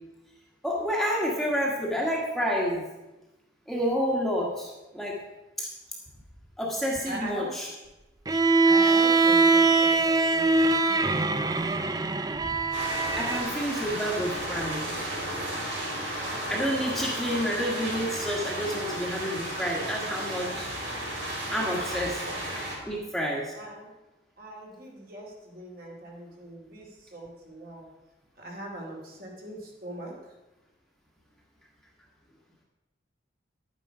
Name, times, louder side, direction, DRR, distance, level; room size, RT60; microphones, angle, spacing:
voice 1, 0.6-2.8 3.7-5.2 5.6-5.7 6.6-7.7 13.2-14.9 16.5-20.7 21.5-22.2 22.8-23.5, equal, ahead, -3 dB, 1.5 m, -29 dB
voice 2, 7.0-7.5 8.7-11.8 22.8-23.1 23.6-23.9 24.4-27.9 28.4-30.3, right 1 dB, 50° right, -1 dB, 2.7 m, -41 dB
Bowed string instrument, 8.3-13.5, right 3 dB, 20° right, 0.4 m, -22 dB
sound 1, 12.7-22.7, right 1 dB, 85° right, 4.7 m, -33 dB
11.5 x 9.2 x 4.9 m, 1.1 s
head